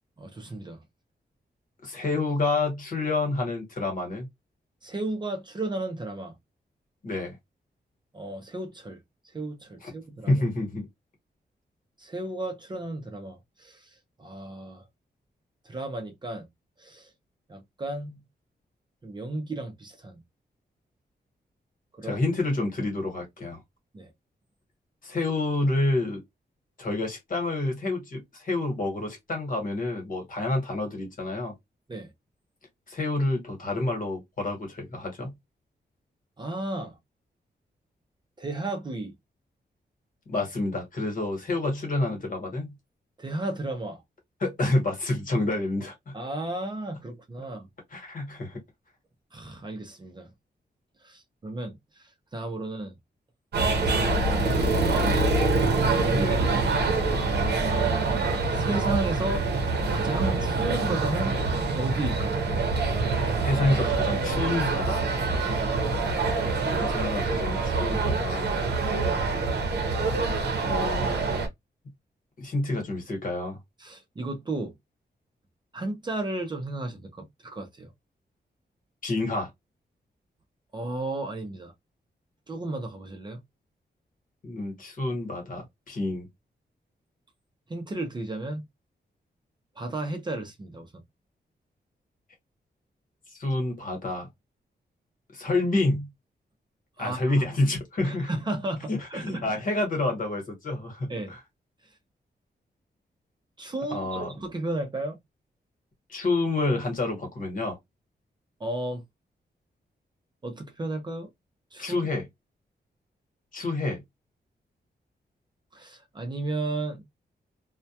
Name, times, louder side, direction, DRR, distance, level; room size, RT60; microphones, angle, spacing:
voice 1, 0.2-0.8 4.8-6.3 8.1-9.0 9.3-10.4 12.0-13.9 14.2-14.8 15.6-16.5 16.8-17.1 17.5-18.2 19.0-20.2 22.0-22.2 23.9-24.1 31.9-32.1 36.4-37.0 38.4-39.1 43.2-44.0 46.1-47.7 49.3-50.3 51.0-52.9 53.9-55.5 57.5-58.1 58.5-59.4 59.9-61.4 61.8-62.5 65.5-65.7 73.8-74.7 75.7-77.9 80.7-81.7 82.5-83.4 87.7-88.6 89.8-90.9 97.0-97.4 98.0-99.5 101.1-101.3 103.6-105.2 108.6-109.0 110.4-111.3 111.7-112.1 115.7-117.0, right 2 dB, 25° right, 0.5 m, -34 dB
voice 2, 1.8-4.3 7.0-7.3 9.8-9.9 10.3-10.9 22.0-23.6 25.0-26.2 26.8-31.5 32.9-35.3 40.3-42.7 44.4-46.1 47.9-48.6 56.1-56.6 63.4-65.0 66.8-68.6 70.7-71.4 72.4-73.6 79.0-79.5 84.4-86.3 93.4-94.3 95.3-96.1 97.0-98.3 98.9-101.4 103.9-104.3 106.1-107.8 111.8-112.3 113.5-114.0, left 2 dB, 50° left, 1.1 m, -28 dB
sound 1, 53.5-71.5, right 3 dB, 70° right, 0.7 m, -25 dB
2.2 x 2.1 x 2.7 m
wide cardioid pair, 175°, 18 cm